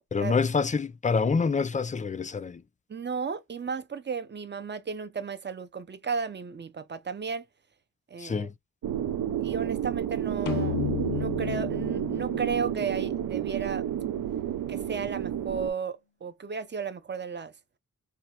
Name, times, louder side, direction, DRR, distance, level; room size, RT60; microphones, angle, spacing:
voice 1, 0.1-2.6 8.2-8.5, left 5 dB, 25° left, 0.3 m, -26 dB
voice 2, 2.9-7.4 8.1-8.5 9.4-13.9 14.7-17.5, right 5 dB, 35° right, 0.5 m, -34 dB
sound 1, 8.8-15.7, right 10 dB, 80° right, 0.5 m, -31 dB
sound 2, 10.5-14.0, left 9 dB, 85° left, 0.7 m, -34 dB
3.3 x 2.2 x 4.2 m
wide cardioid pair, 105°, 34 cm